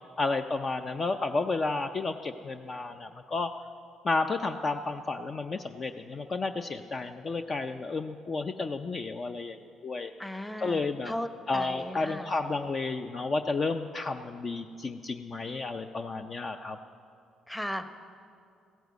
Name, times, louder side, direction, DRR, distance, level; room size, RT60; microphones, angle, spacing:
voice 1, 0.2-3.5 4.0-10.1 10.6-11.1 11.5-16.8, left 3 dB, 35° left, 8 dB, 0.5 m, -32 dB
voice 2, 10.2-12.3 17.5-17.9, left 1 dB, 5° left, 8 dB, 0.9 m, -36 dB
15.5 x 9.1 x 8.2 m, 2.4 s
cardioid pair, 90°, 0 cm